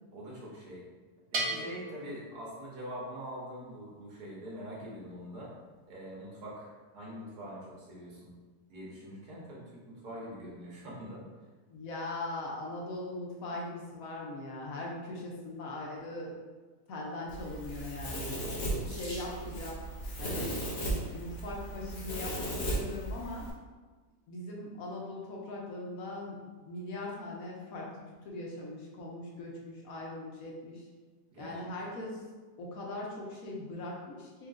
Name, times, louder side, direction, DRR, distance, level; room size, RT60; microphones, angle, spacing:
voice 1, 0.1-0.8 1.3-5.5 5.9-8.3 8.7-11.3 18.6-19.2 31.3-31.6, equal, 90° right, -5 dB, 1.8 m, -44 dB
Bell, 1.3-3.1, right 2 dB, 60° right, 0.5 m, -37 dB
voice 2, 11.7-16.3 16.9-18.5 18.8-19.8 20.2-23.5 24.3-27.9 28.2-30.9 31.4-32.2 32.6-34.5, left 2 dB, 65° left, -3 dB, 1.2 m, -40 dB
Domestic sounds home sounds, 17.3-23.5, right 1 dB, 50° left, 1.2 m, -36 dB
Water tap faucet / Sink (filling or washing), 18.6-19.8 20.8-21.2 21.9-22.0 22.4-22.5, left 1 dB, 25° left, 0.6 m, -48 dB
4.5 x 2.6 x 3.6 m, 1.4 s
omnidirectional pair, 1.7 m